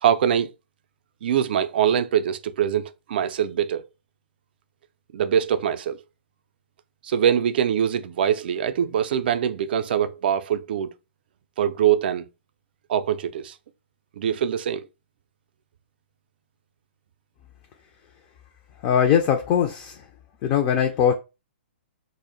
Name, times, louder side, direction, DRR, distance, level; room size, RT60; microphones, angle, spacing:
voice 1, 0.0-0.5 1.2-3.8 5.1-6.0 7.0-10.9 11.6-12.3 12.9-13.6 14.2-14.9, right 9 dB, 60° right, 0.3 m, -23 dB
voice 2, 18.8-20.1 20.4-21.1, left 8 dB, 35° left, 0.4 m, -21 dB
2.2 x 2.0 x 3.7 m
hypercardioid pair, 130°, 6 cm